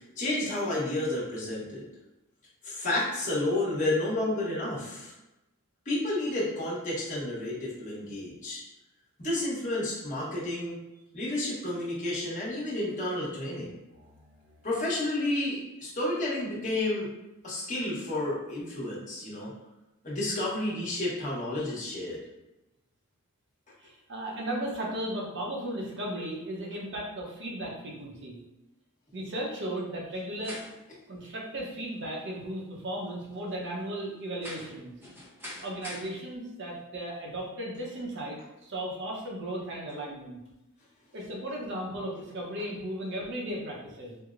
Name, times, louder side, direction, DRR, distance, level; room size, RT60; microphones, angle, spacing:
voice 1, 0.0-1.8 2.6-5.1 5.8-8.6 9.2-10.8 11.1-13.7 14.6-17.1 17.4-19.5 20.0-22.2, left 1 dB, 35° left, -7 dB, 1.1 m, -31 dB
voice 2, 13.9-14.6 23.8-28.4 29.1-30.6 31.1-34.9 35.6-40.4 41.1-44.2, right 1 dB, 55° right, -2 dB, 0.7 m, -36 dB
sound 1, 30.4-36.1, left 1 dB, 10° right, 0.7 m, -47 dB
4.6 x 2.1 x 2.5 m, 0.94 s
head